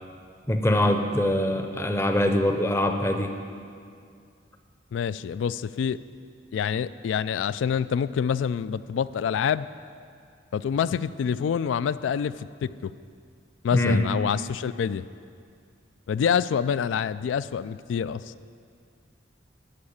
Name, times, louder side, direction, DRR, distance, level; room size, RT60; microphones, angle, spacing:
voice 1, 0.5-3.4 13.7-14.0, left 1 dB, 15° left, 6 dB, 0.6 m, -23 dB
voice 2, 4.9-6.0 6.5-9.7 10.5-12.9 13.6-15.1 16.1-18.3, left 7 dB, 90° left, 17 dB, 0.3 m, -26 dB
11.5 x 4.8 x 8.6 m, 2.3 s
head